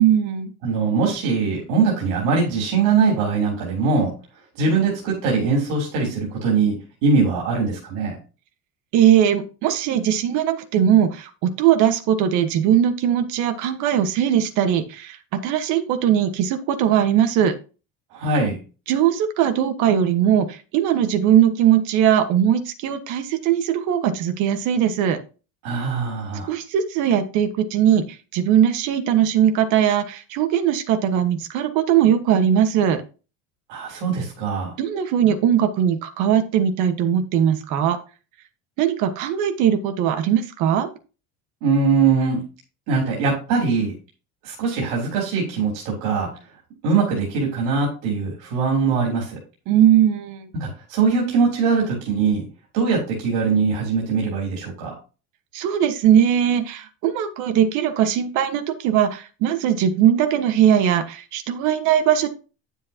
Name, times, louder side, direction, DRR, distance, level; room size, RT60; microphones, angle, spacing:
voice 1, 0.0-0.5 8.9-17.5 18.9-25.2 26.5-33.0 34.8-38.0 38.8-40.9 49.7-50.5 55.5-62.3, right 9 dB, 60° right, 8 dB, 1.5 m, -19 dB
voice 2, 0.6-4.1 4.6-8.2 18.1-18.6 25.6-26.5 33.7-34.8 41.6-42.5 42.9-43.9 44.4-46.3 46.8-49.4 50.5-52.5 52.7-54.9, right 4 dB, 80° right, -2 dB, 3.6 m, -21 dB
10.5 x 7.3 x 2.9 m, 0.33 s
cardioid pair, 165°, 33 cm